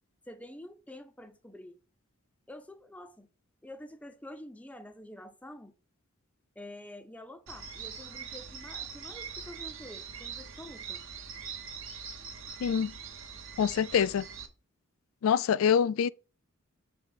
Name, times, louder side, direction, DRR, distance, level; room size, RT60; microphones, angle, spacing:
voice 1, 0.3-1.8 2.5-3.3 3.6-5.7 6.6-11.0, left 1 dB, 5° left, 0.6 m, -47 dB
sound 1, 7.5-14.5, right 6 dB, 65° right, 1.0 m, -43 dB
voice 2, 12.6-12.9 13.6-14.3 15.2-16.1, left 7 dB, 75° left, 0.3 m, -25 dB
6.0 x 3.7 x 5.6 m
head